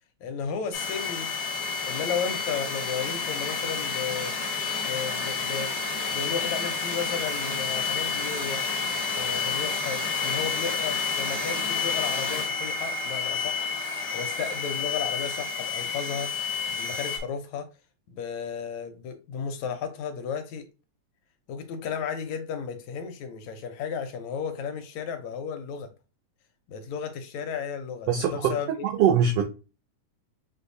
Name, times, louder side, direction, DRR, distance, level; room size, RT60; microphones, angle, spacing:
voice 1, 0.2-1.3 1.8-4.3 4.8-5.7 6.1-8.6 9.1-13.7 14.1-17.7 18.1-20.7 21.5-25.9 26.7-28.7, left 6 dB, 75° left, 1.9 m, -34 dB
sound 1, 0.7-17.2, left 4 dB, 60° left, 1.0 m, -30 dB
voice 2, 28.1-29.4, right 7 dB, 85° right, 1.3 m, -23 dB
6.3 x 2.7 x 2.6 m
omnidirectional pair, 3.3 m